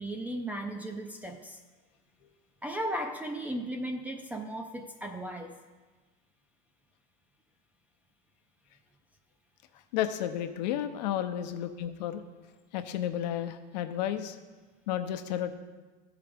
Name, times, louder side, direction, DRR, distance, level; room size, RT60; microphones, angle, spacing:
voice 1, 0.0-1.6 2.6-5.6, right 1 dB, 5° right, 4 dB, 0.4 m, -36 dB
voice 2, 9.9-12.2 12.7-14.4 14.9-15.5, left 11 dB, 85° left, 8 dB, 0.7 m, -32 dB
14.0 x 4.9 x 3.4 m, 1.3 s
supercardioid pair, 145°, 21 cm